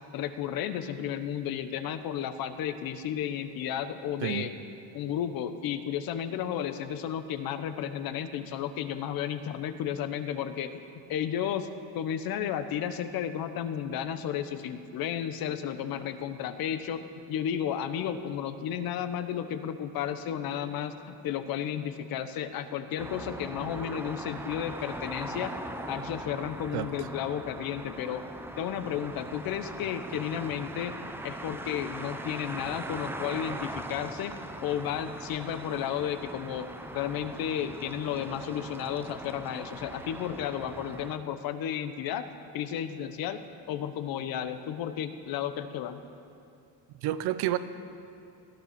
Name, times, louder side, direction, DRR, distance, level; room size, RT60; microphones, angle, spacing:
voice 1, 0.1-4.5 4.9-10.8 11.1-11.7 11.9-25.6 25.9-28.3 28.6-36.7 36.9-42.3 42.5-46.0, left 9 dB, 60° left, 10 dB, 1.0 m, -33 dB
sound 1, 23.0-41.2, right 1 dB, 5° right, 0.6 m, -40 dB
voice 2, 26.7-27.1 47.0-47.6, right 13 dB, 70° right, 13 dB, 0.9 m, -30 dB
18.0 x 12.5 x 5.9 m, 2.6 s
cardioid pair, 140°, 40 cm